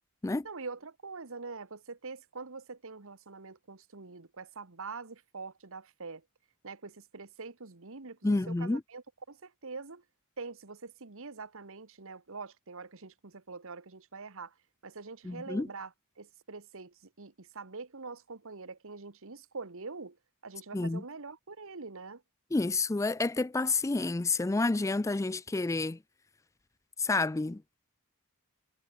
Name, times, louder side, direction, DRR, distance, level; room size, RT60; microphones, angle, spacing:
voice 1, 0.4-6.2 6.6-10.0 10.4-14.5 14.8-15.9 16.2-20.2 20.4-22.2, right 4 dB, 65° right, 1.4 m, -44 dB
voice 2, 8.2-8.8 15.2-15.7 20.7-21.0 22.5-26.0 27.0-27.6, left 3 dB, 15° left, 0.4 m, -29 dB
head